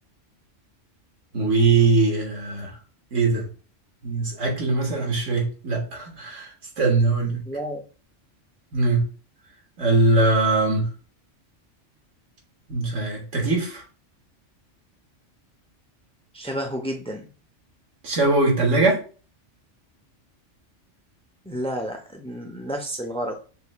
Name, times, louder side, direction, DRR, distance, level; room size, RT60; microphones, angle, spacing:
voice 1, 1.3-2.7 3.1-3.5 4.0-7.4 8.7-9.0 9.8-10.9 12.7-13.8 18.0-19.0, right 3 dB, 75° right, 1.7 m, -21 dB
voice 2, 7.5-7.8 16.3-17.3 21.4-23.4, equal, 5° left, 0.5 m, -30 dB
6.7 x 3.0 x 2.2 m
omnidirectional pair, 1.3 m